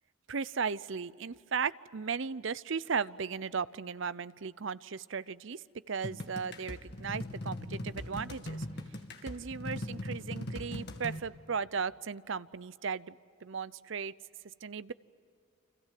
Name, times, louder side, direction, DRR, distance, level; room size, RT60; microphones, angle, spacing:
voice 1, 0.3-8.6 9.2-13.1 13.4-14.1 14.6-14.9, right 5 dB, 65° right, 18 dB, 0.6 m, -36 dB
sound 1, 6.0-11.2, left 1 dB, 50° left, 2.2 m, -40 dB
29.5 x 26.5 x 7.6 m, 2.3 s
head